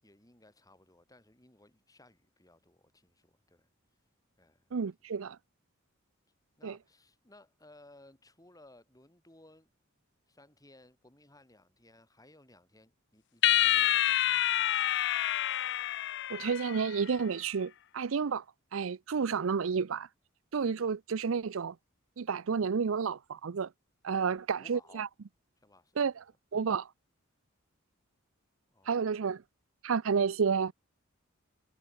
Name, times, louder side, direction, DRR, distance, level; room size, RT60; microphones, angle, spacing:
voice 1, 0.0-3.7 4.4-4.7 6.6-9.7 10.3-14.8 24.3-25.1 25.6-26.0 28.7-29.3, left 2 dB, 15° left, 5.7 m, -60 dB
voice 2, 4.7-5.4 6.6-6.8 16.3-18.4 18.7-20.1 20.5-21.7 22.2-23.7 24.0-25.1 26.0-26.2 26.5-26.9 28.9-29.4 29.8-30.7, right 6 dB, 70° right, 0.5 m, -31 dB
sound 1, 13.4-17.0, left 13 dB, 60° left, 0.6 m, -28 dB
head